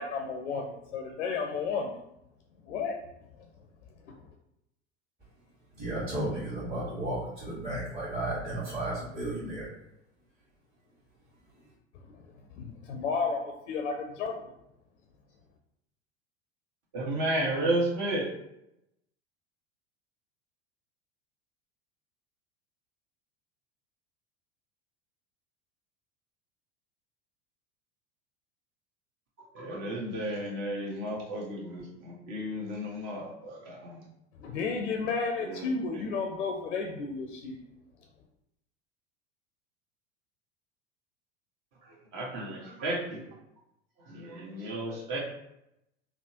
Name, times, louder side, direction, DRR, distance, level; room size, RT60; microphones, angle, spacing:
voice 1, 0.0-2.0 2.7-3.0 12.0-12.3 12.5-14.5 34.4-37.6, left 4 dB, 85° left, 2 dB, 0.5 m, -32 dB
voice 2, 5.8-9.7, right 1 dB, 25° right, -9 dB, 1.2 m, -33 dB
voice 3, 16.9-18.3 29.5-34.0 35.4-35.7 35.9-36.0 41.9-43.2 44.1-45.2, right 1 dB, 50° right, -4 dB, 1.2 m, -33 dB
3.3 x 2.0 x 2.7 m, 0.83 s
hypercardioid pair, 85°, 35 cm